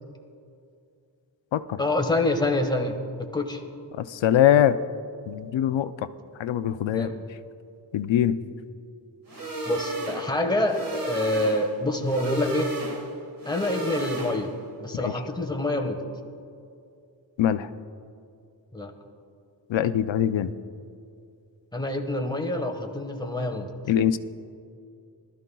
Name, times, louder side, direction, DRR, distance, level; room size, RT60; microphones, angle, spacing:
voice 1, 1.8-3.6 6.9-7.2 9.6-12.7 13.4-14.5 14.8-16.0 18.7-18.9 21.7-23.7, left 1 dB, 10° left, 3 dB, 1.4 m, -26 dB
voice 2, 4.0-4.8 5.3-6.1 6.4-7.1 7.9-8.4 15.0-15.1 17.4-17.7 19.7-20.5 23.9-24.2, left 10 dB, 85° left, 13 dB, 0.5 m, -22 dB
sound 1, 9.3-14.7, right 1 dB, 50° right, 1.8 m, -34 dB
20.0 x 13.0 x 2.3 m, 2.4 s
wide cardioid pair, 80°, 44 cm